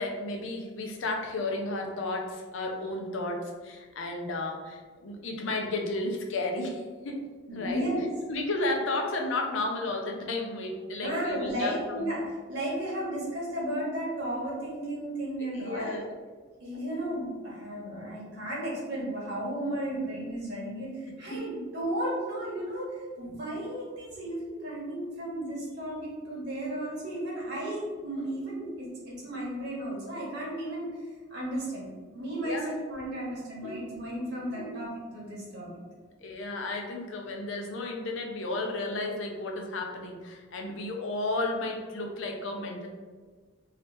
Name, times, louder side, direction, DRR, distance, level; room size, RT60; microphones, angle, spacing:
voice 1, 0.0-7.2 7.5-7.8 8.3-12.1 15.4-16.1 21.3-21.4 32.4-32.7 33.6-34.0 34.4-34.8 36.2-42.9, left 2 dB, 70° left, 2 dB, 0.6 m, -33 dB
voice 2, 7.5-8.0 11.0-12.2 12.5-16.0 16.6-31.0 31.3-35.7, right 1 dB, 55° right, -5 dB, 1.2 m, -34 dB
2.9 x 2.8 x 3.3 m, 1.5 s
head